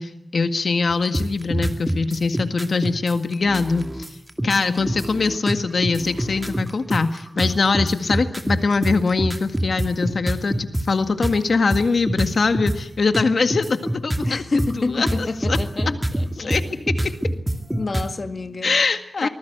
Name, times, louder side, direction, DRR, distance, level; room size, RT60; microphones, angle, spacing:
voice 1, 0.0-3.9 4.4-14.4 14.9-15.6 16.4-16.6 18.6-19.3, left 4 dB, 70° left, 1.8 m, -22 dB
sound 1, 0.9-10.9 11.2-11.3 11.7-12.8 13.1-18.1, right 1 dB, 10° right, 2.5 m, -25 dB
voice 2, 4.4-4.9 14.2-17.1 17.7-18.7 19.2-19.3, left 3 dB, 50° left, 1.9 m, -29 dB
24.0 x 20.5 x 8.1 m
wide cardioid pair, 105°, 0 cm